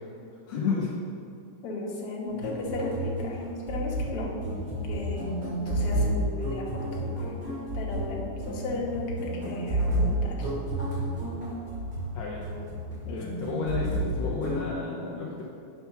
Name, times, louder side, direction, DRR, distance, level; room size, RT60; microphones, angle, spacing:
voice 1, 0.5-0.9 12.1-12.5 13.0-15.4, left 4 dB, 75° left, -4 dB, 1.6 m, -32 dB
voice 2, 1.6-3.4 3.7-4.3 4.7-5.3 5.7-7.3 7.7-10.5 13.1-13.2, left 2 dB, 60° left, -2 dB, 1.7 m, -35 dB
sound 1, 2.3-14.7, right 1 dB, 30° right, 2.1 m, -31 dB
8.2 x 4.5 x 5.7 m, 2.6 s
omnidirectional pair, 3.8 m